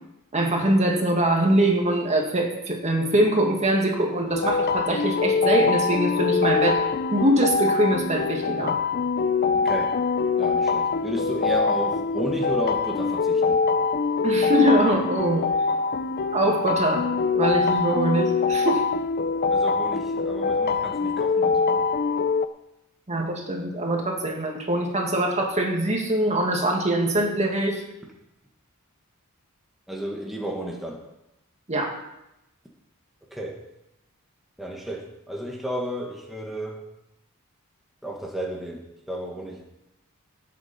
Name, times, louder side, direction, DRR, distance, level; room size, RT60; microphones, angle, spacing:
voice 1, 0.3-6.8 7.1-8.8 14.2-15.5 16.3-17.1 17.3-18.8 23.1-27.8 31.7-31.9, right 1 dB, 30° right, 1 dB, 2.1 m, -23 dB
sound 1, 4.3-22.5, left 4 dB, 45° left, 0.5 m, -24 dB
voice 2, 9.5-10.0 10.4-13.6 19.5-21.8 29.9-31.0 33.3-33.6 34.6-36.8 38.0-39.6, equal, ahead, -3 dB, 1.7 m, -33 dB
18.5 x 8.5 x 4.4 m, 0.89 s
head